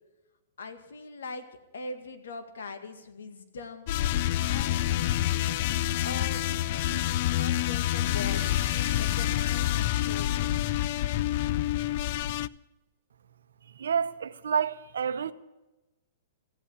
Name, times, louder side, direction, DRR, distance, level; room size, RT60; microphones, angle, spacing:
voice 1, 0.6-3.9 4.5-4.9 5.3-8.5 9.0-10.5, left 3 dB, 85° left, 2.0 m, -42 dB
sound 1, 3.9-12.5, left 13 dB, 50° left, 0.4 m, -27 dB
sound 2, 7.8-11.2, right 13 dB, 50° right, 2.2 m, -51 dB
voice 2, 13.8-15.3, right 7 dB, 85° right, 0.8 m, -29 dB
15.0 x 8.8 x 9.7 m
hypercardioid pair, 145°, 0 cm